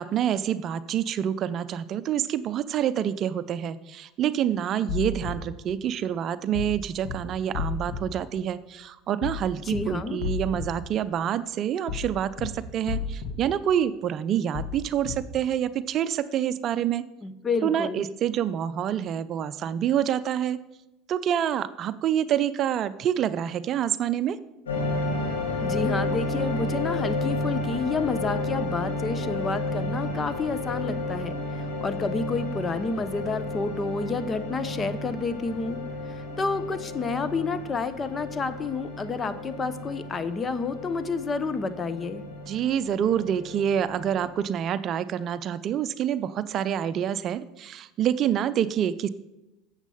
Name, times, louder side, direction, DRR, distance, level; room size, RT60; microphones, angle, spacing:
voice 1, 0.0-17.0 17.6-20.6 21.1-24.4 42.5-49.1, right 9 dB, 50° right, 15 dB, 0.5 m, -27 dB
sound 1, 4.9-5.3 6.5-6.7 7.0-7.2 7.5-8.0 9.2-9.4 9.7-9.8 10.2-10.7 11.9-12.1 12.4-12.5 12.9-13.3 14.5-14.7 15.0-15.2, left 7 dB, 65° left, 1.9 m, -31 dB
voice 2, 9.6-10.2 17.2-18.1 25.6-31.3 31.8-35.8 36.1-42.2, left 4 dB, 30° left, 13 dB, 0.8 m, -29 dB
sound 2, 24.6-44.5, left 2 dB, 90° left, 3.2 m, -32 dB
8.1 x 7.2 x 5.5 m, 0.96 s
hypercardioid pair, 85°, 0 cm